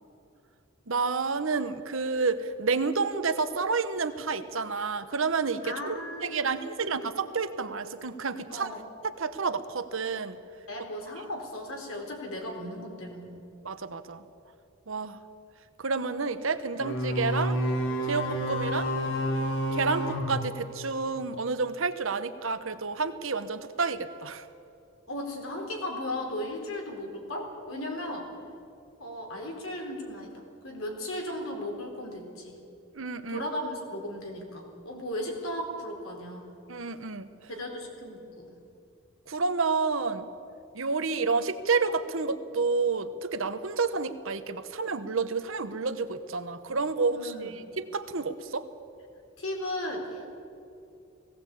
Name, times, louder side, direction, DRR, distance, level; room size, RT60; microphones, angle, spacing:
voice 1, 0.9-8.7 9.0-10.4 13.6-14.2 14.9-15.2 15.8-17.6 18.1-18.9 19.7-24.5 32.9-33.4 36.7-37.3 39.3-40.3 40.7-48.6, right 4 dB, 70° right, 10 dB, 1.0 m, -30 dB
voice 2, 5.6-7.0 8.5-8.8 10.7-13.4 25.1-28.3 29.0-32.5 33.3-36.5 37.5-38.5 47.1-47.6 49.4-50.3, left 1 dB, 75° left, 1 dB, 4.2 m, -36 dB
sound 1, 16.8-21.3, equal, 60° left, 2.2 m, -30 dB
18.0 x 17.0 x 8.5 m, 2.6 s
head